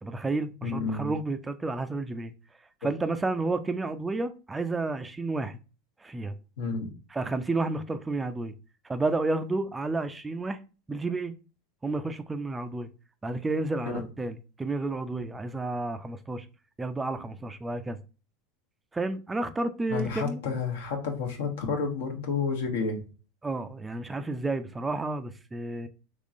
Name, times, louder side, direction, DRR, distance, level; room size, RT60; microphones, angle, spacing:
voice 1, 0.0-2.3 2.8-5.6 6.0-6.3 7.1-8.5 8.8-10.6 10.9-11.3 11.8-12.9 13.2-16.5 16.8-18.0 18.9-20.4 23.4-25.9, right 2 dB, 15° right, 0.3 m, -31 dB
voice 2, 0.6-1.1 6.6-6.9 19.9-23.0, left 5 dB, 75° left, 0.9 m, -30 dB
3.6 x 3.1 x 2.5 m
hypercardioid pair, 90°, 0 cm